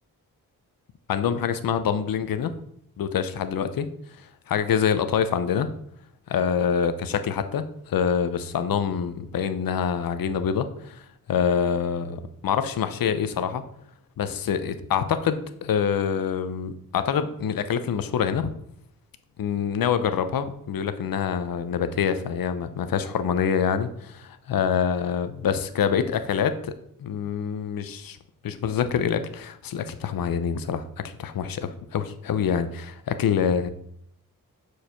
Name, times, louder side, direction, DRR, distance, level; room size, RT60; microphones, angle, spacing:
voice 1, 1.1-2.5 3.0-3.9 4.5-5.7 6.3-11.0 11.3-13.6 14.2-18.5 19.4-26.7 27.0-28.2 28.4-33.7, left 7 dB, 75° left, 11 dB, 0.8 m, -26 dB
6.8 x 4.9 x 5.8 m, 0.72 s
cardioid pair, 95°, 34 cm